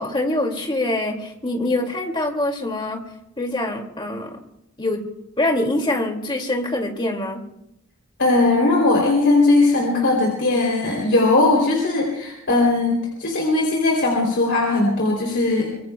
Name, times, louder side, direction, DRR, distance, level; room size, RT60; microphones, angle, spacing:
voice 1, 0.0-3.0 3.4-4.4 4.8-5.0 5.4-7.4, left 1 dB, 20° left, 2 dB, 2.4 m, -24 dB
voice 2, 8.2-15.7, left 2 dB, 55° left, -2 dB, 3.2 m, -19 dB
24.5 x 22.5 x 2.3 m, 0.81 s
head